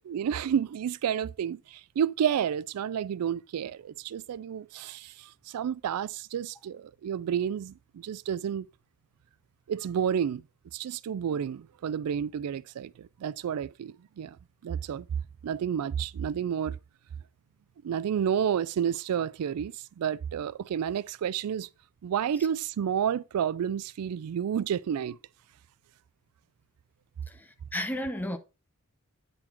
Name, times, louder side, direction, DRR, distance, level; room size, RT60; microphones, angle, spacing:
voice 1, 0.1-8.7 9.7-10.4 10.7-14.4 14.6-15.1 15.4-16.8 17.8-21.7 22.0-25.2, right 8 dB, 80° right, 0.3 m, -30 dB
voice 2, 27.3-28.4, left 1 dB, 10° left, 0.7 m, -33 dB
8.9 x 4.0 x 4.3 m
head